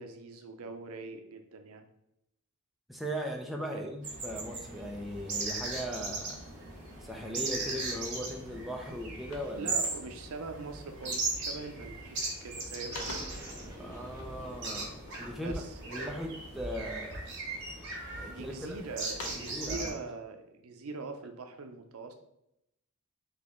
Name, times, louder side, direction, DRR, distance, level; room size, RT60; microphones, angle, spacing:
voice 1, 0.0-1.9 3.7-4.0 9.5-13.0 15.4-16.1 18.2-22.1, right 3 dB, 80° right, 6 dB, 0.6 m, -42 dB
voice 2, 2.9-6.4 7.0-9.7 13.8-15.6 15.9-17.2 18.2-18.8 19.4-19.9, equal, ahead, 1 dB, 0.4 m, -38 dB
sound 1, 4.0-19.9, right 3 dB, 55° right, 1.3 m, -38 dB
sound 2, 8.4-8.5 8.8-10.4 11.0-11.3 11.7-12.2 12.5-13.5 15.0-16.2 16.8-17.4 17.9-18.6 18.9-19.6, left 2 dB, 80° left, 0.8 m, -48 dB
sound 3, 12.9-18.0, equal, 15° right, 1.0 m, -49 dB
4.1 x 2.9 x 3.6 m, 0.81 s
head